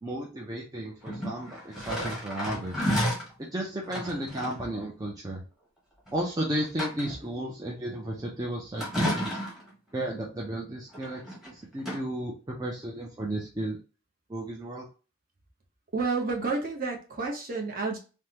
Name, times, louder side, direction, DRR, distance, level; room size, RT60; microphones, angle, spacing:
voice 1, 0.0-2.8 3.4-5.4 6.1-9.4 9.9-13.8 14.3-14.9, right 1 dB, 20° right, -2 dB, 0.5 m, -34 dB
sound 1, 1.0-3.3 3.8-4.6 6.1-6.2 6.6-7.3 8.8-9.7 10.9-11.5 11.8-12.0, equal, ahead, 1.0 m, -31 dB
voice 2, 15.9-18.0, right 4 dB, 45° right, 0 dB, 0.9 m, -30 dB
3.4 x 2.1 x 2.8 m, 0.34 s
head